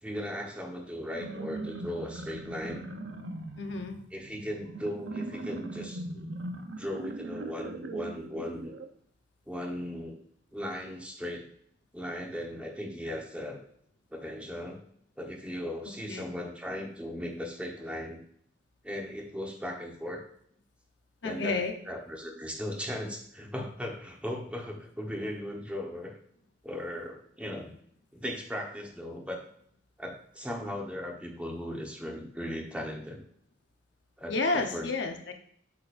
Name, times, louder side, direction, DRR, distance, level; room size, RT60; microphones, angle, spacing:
voice 1, 0.0-2.9 4.1-6.0 6.8-8.7 9.5-10.2 10.5-11.5 11.9-13.6 14.1-14.8 15.2-18.2 18.8-20.2 21.2-26.2 26.6-27.8 28.1-29.5 30.0-33.2 34.2-34.9, equal, 5° right, 0 dB, 1.2 m, -37 dB
sound 1, 1.0-8.9, right 2 dB, 80° right, 0.8 m, -40 dB
voice 2, 3.6-4.0 16.1-16.2 21.2-21.7 34.3-35.3, left 3 dB, 75° left, 4 dB, 1.0 m, -30 dB
8.5 x 6.6 x 2.6 m, 0.63 s
head